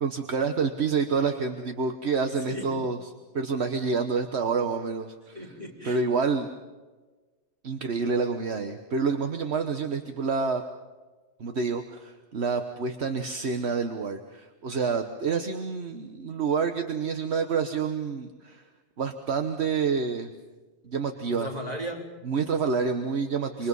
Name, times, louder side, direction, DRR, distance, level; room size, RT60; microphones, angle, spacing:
voice 1, 0.0-3.0 3.3-5.4 5.8-6.5 7.6-10.6 11.4-18.6 19.0-20.3 20.8-21.5 22.2-23.7, right 5 dB, 70° right, 6 dB, 1.4 m, -28 dB
voice 2, 2.5-2.8 5.3-6.0 21.3-22.2 23.6-23.7, equal, 35° right, -1 dB, 4.8 m, -37 dB
27.0 x 25.0 x 5.5 m, 1.3 s
omnidirectional pair, 1.2 m